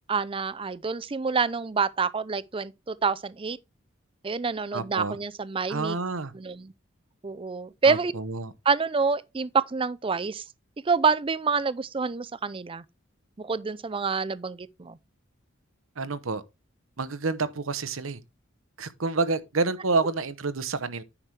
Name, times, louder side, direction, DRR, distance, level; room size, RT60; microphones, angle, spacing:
voice 1, 0.1-3.6 4.2-6.0 6.3-6.7 7.2-8.1 8.7-10.4 10.9-12.8 13.4-15.0, right 5 dB, 25° right, 0.5 m, -27 dB
voice 2, 4.7-5.2 5.7-6.3 7.8-8.5 16.0-16.4 17.0-18.2 18.8-21.0, right 3 dB, 80° right, 0.9 m, -28 dB
9.9 x 6.0 x 3.3 m
head